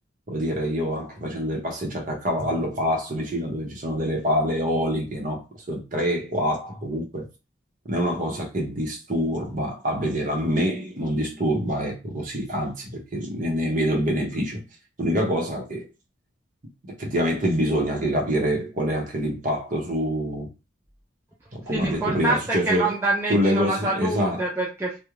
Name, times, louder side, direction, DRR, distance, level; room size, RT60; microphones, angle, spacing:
voice 1, 0.3-5.4 5.7-7.3 7.8-14.6 15.0-15.9 16.9-20.5 21.5-22.9 23.3-24.4, equal, 40° right, 0.7 m, -26 dB
voice 2, 21.7-25.0, right 2 dB, 10° right, 0.4 m, -26 dB
2.4 x 2.1 x 3.0 m
head